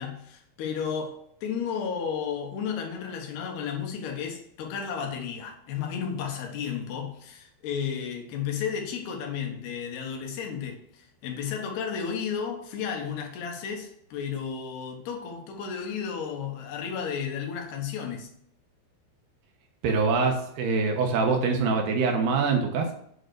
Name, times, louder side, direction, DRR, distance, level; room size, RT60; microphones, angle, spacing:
voice 1, 0.0-18.3, left 7 dB, 65° left, 3.0 m, -33 dB
voice 2, 19.8-22.9, right 4 dB, 75° right, 2.7 m, -24 dB
7.8 x 4.7 x 6.3 m
omnidirectional pair, 5.6 m